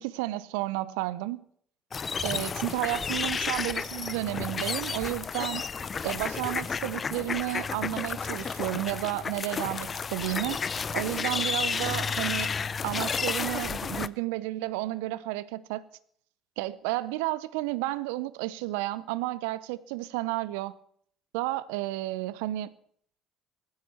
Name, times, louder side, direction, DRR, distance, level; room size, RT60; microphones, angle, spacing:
voice 1, 0.0-1.4 2.2-5.6 6.0-10.6 10.9-12.5 12.8-15.8 16.6-20.7 21.3-22.7, right 17 dB, 70° right, 0.6 m, -32 dB
sound 1, 1.9-14.1, left 5 dB, 35° left, 0.5 m, -32 dB
18.5 x 15.5 x 4.4 m
figure-of-eight pair, 55°, 0 cm